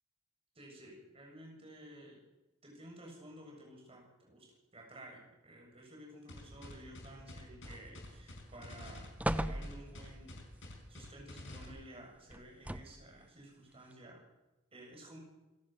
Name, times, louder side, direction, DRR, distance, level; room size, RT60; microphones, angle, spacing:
voice 1, 0.6-2.2 2.6-10.3 10.6-14.2 14.7-15.2, right 1 dB, 30° right, 0 dB, 7.1 m, -53 dB
sound 1, 6.3-11.7, left 1 dB, 60° left, 5.1 m, -49 dB
sound 2, 7.6-8.2 8.6-8.7 9.2-10.2 12.3-13.1 13.9-14.0, right 1 dB, 5° right, 0.7 m, -38 dB
27.0 x 13.0 x 7.7 m, 1.0 s
head